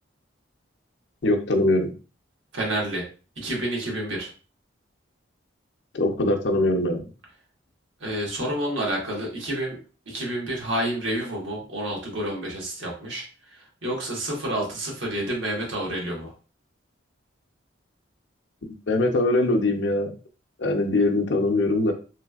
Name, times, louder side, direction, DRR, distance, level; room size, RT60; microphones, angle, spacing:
voice 1, 1.2-1.9 5.9-7.0 18.9-20.1 20.6-21.9, left 2 dB, 65° left, 4 dB, 0.6 m, -22 dB
voice 2, 2.5-3.1 3.4-4.3 8.0-9.8 10.1-13.2 13.8-16.3, right 1 dB, 80° right, -2 dB, 1.3 m, -29 dB
3.2 x 3.2 x 2.3 m, 0.36 s
head